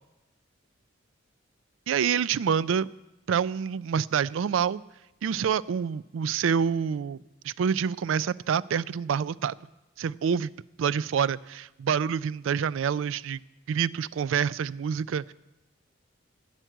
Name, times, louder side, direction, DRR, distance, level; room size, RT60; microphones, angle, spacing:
voice 1, 1.9-2.9 3.3-4.8 5.2-7.2 7.4-9.6 10.0-10.5 10.8-13.4 13.7-15.3, right 7 dB, 80° right, 20 dB, 0.3 m, -27 dB
14.5 x 6.0 x 9.1 m, 0.99 s
head